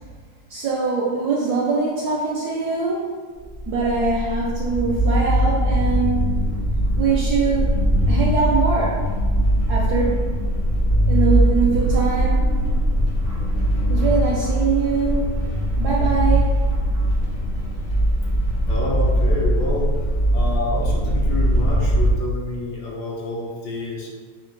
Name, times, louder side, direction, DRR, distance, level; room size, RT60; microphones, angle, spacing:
voice 1, 0.5-3.2 3.7-6.4 7.0-9.1 9.7-10.3 11.1-12.6 13.9-15.4 15.8-16.6 21.0-21.1, right 4 dB, 75° right, -3 dB, 0.9 m, -23 dB
sound 1, 3.4-22.1, equal, 85° left, 0.5 m, -20 dB
voice 2, 18.6-19.9 20.3-24.1, left 2 dB, 70° left, -3 dB, 1.2 m, -28 dB
4.3 x 2.3 x 3.8 m, 1.5 s
omnidirectional pair, 2.2 m